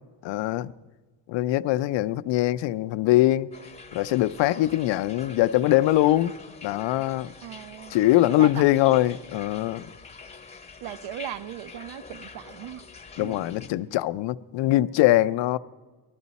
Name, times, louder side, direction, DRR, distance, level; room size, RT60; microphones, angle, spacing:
voice 1, 0.2-0.7 1.3-3.5 3.9-6.3 6.6-7.3 7.9-9.9 13.2-15.6, left 15 dB, 85° left, 0.5 m, -22 dB
sound 1, 3.5-13.7, left 4 dB, 15° left, 0.7 m, -45 dB
voice 2, 7.4-8.0 8.4-8.5 10.8-12.8 13.2-13.4, right 12 dB, 75° right, 0.7 m, -38 dB
19.5 x 13.0 x 4.1 m
cardioid pair, 145°, 43 cm